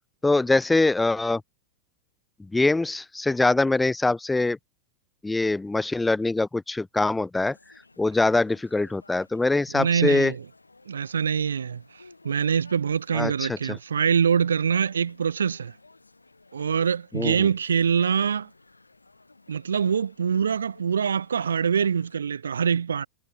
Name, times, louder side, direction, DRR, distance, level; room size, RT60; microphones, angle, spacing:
voice 1, 0.2-1.4 2.5-4.6 5.2-7.6 8.0-10.3 13.1-13.8 17.1-17.5, left 2 dB, 10° left, 0.9 m, -23 dB
sound 1, 7.4-22.2, left 3 dB, 80° left, 6.0 m, -55 dB
voice 2, 9.7-10.4 10.9-11.8 12.2-15.7 16.5-18.5 19.5-23.1, right 7 dB, 70° right, 1.1 m, -24 dB
figure-of-eight pair, 90°, 0 cm